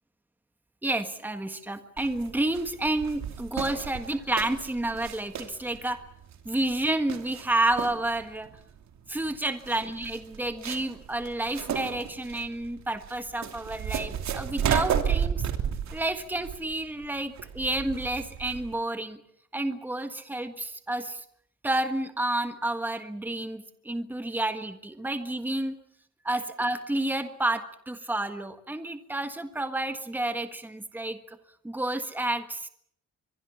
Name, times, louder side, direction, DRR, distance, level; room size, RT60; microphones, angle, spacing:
voice 1, 0.8-6.0 6.4-8.5 9.1-15.4 15.9-19.2 19.5-21.2 21.6-25.7 26.2-31.4 31.6-32.7, right 1 dB, 5° right, 8 dB, 1.6 m, -30 dB
sound 1, 2.0-18.7, right 8 dB, 70° right, 3.0 m, -33 dB
24.0 x 23.5 x 7.1 m, 0.67 s
wide cardioid pair, 165°, 29 cm